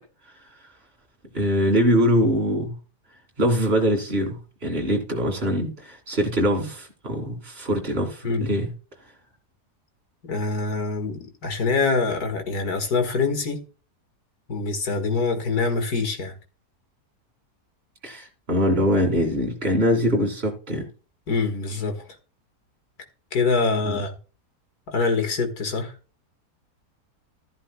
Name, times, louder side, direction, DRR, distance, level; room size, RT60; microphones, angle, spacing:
voice 1, 1.3-2.8 3.4-8.7 18.0-20.9 23.8-24.0, equal, 35° right, 2.8 m, -23 dB
voice 2, 10.2-13.6 14.5-16.4 21.3-22.1 23.3-24.1 24.9-25.9, left 4 dB, 70° left, 2.3 m, -24 dB
13.5 x 11.5 x 2.3 m
omnidirectional pair, 1.7 m